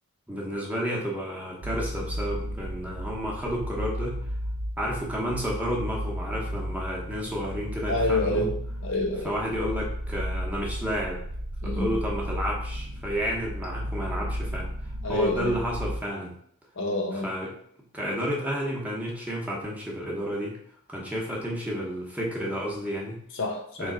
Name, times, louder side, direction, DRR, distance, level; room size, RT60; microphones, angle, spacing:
voice 1, 0.3-4.2 4.8-8.5 9.2-11.2 11.6-16.3 17.2-17.5 17.9-20.6 20.9-23.2 23.8-23.9, equal, 5° right, -4 dB, 0.8 m, -31 dB
sound 1, 1.6-16.0, equal, 45° right, 0.4 m, -34 dB
voice 2, 7.9-8.5 8.8-9.3 11.6-11.9 15.0-15.5 16.8-17.3 23.3-23.9, left 2 dB, 55° left, 1 dB, 0.7 m, -27 dB
3.6 x 3.1 x 3.7 m, 0.66 s
head